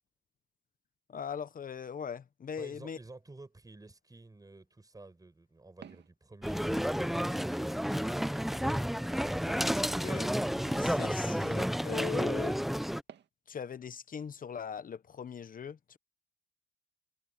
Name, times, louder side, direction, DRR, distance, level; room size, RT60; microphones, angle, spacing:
voice 1, 1.1-3.0 9.7-10.3 10.6-12.6 13.5-16.0, left 7 dB, 45° left, 1.1 m, -40 dB
voice 2, 2.5-9.6, right 2 dB, 20° right, 6.8 m, -53 dB
Walk footsteps, 5.8-6.1 6.7-6.9 7.6-7.8 8.5-8.7 9.5-9.7 10.4-10.5 11.3-11.5 12.2-12.4 13.1-13.3, right 8 dB, 60° right, 1.9 m, -53 dB
sound 1, 6.4-13.0, equal, ahead, 0.9 m, -31 dB
cardioid pair, 90°, 20 cm